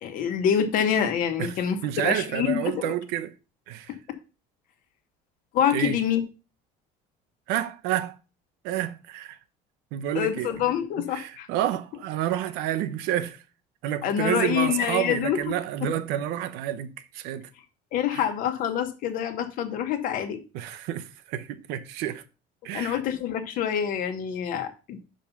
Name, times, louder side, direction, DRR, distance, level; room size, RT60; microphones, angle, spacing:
voice 1, 0.0-2.9 5.5-6.2 10.1-11.5 14.0-15.5 17.9-20.4 22.7-25.0, left 9 dB, 55° left, 1.2 m, -26 dB
voice 2, 1.4-3.3 3.7-4.0 5.7-6.0 7.5-8.2 8.6-9.4 9.9-10.5 11.1-13.4 13.8-17.5 18.1-18.2 20.5-22.2 22.6-23.0, right 12 dB, 75° right, 0.8 m, -29 dB
5.5 x 5.2 x 5.8 m
cardioid pair, 150°, 17 cm